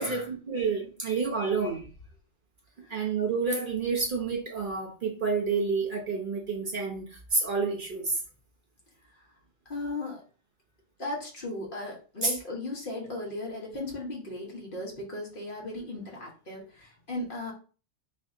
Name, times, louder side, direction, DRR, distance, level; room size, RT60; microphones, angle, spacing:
voice 1, 0.0-1.9 2.9-8.2 12.2-12.4, right 4 dB, 50° right, 0 dB, 0.9 m, -29 dB
voice 2, 1.0-1.7 2.8-3.1 9.7-10.2 11.0-17.5, left 2 dB, 50° left, -2 dB, 1.3 m, -37 dB
3.4 x 2.7 x 3.6 m, 0.37 s
omnidirectional pair, 1.2 m